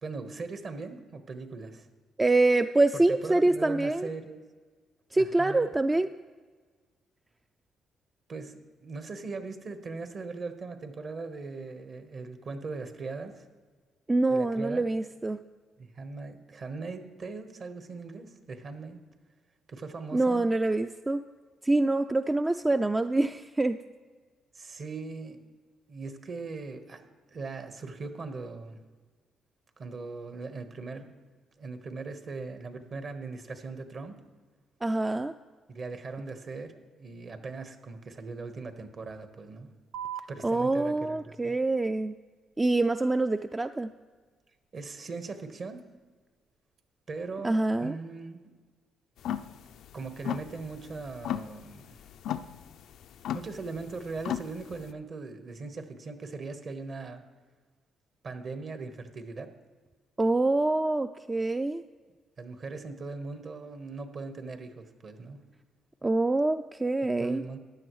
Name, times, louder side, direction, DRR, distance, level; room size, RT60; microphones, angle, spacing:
voice 1, 0.0-1.9 2.9-4.4 5.1-5.7 8.3-13.5 14.3-14.8 15.8-19.0 19.7-20.5 24.5-25.4 25.9-27.0 27.3-28.8 29.8-31.1 31.6-34.2 35.7-36.7 37.0-39.7 40.3-41.6 44.7-45.9 47.1-48.4 49.9-52.0 53.3-57.2 58.2-59.5 62.4-65.4 67.2-67.6, right 4 dB, 50° right, 8 dB, 1.2 m, -39 dB
voice 2, 2.2-4.1 5.1-6.1 14.1-15.4 20.1-21.2 21.6-23.8 34.8-35.3 40.4-42.2 42.6-43.9 47.4-47.9 60.2-61.8 66.0-67.4, right 2 dB, 20° right, 9 dB, 0.3 m, -25 dB
sound 1, 39.9-46.9, right 9 dB, 75° right, 0.6 m, -48 dB
sound 2, 49.2-54.9, left 10 dB, 75° left, 0.4 m, -36 dB
15.0 x 10.5 x 3.1 m, 1.4 s
cardioid pair, 90°, 0 cm